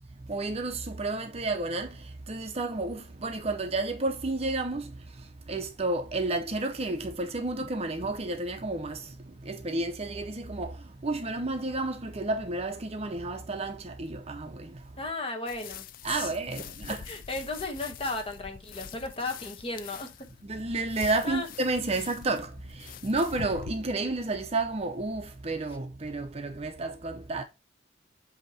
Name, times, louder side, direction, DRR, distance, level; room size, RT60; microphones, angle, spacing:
voice 1, 0.3-2.0 2.3-4.9 5.5-9.1 9.4-10.8 11.0-14.8 16.0-17.0 20.4-27.4, right 2 dB, 35° right, 0.6 m, -31 dB
voice 2, 15.0-16.3 17.1-20.3 21.2-21.5, left 2 dB, 30° left, 1.2 m, -35 dB
Soil Brush, 15.5-23.7, left 7 dB, 50° left, 0.4 m, -45 dB
8.0 x 2.9 x 4.0 m
head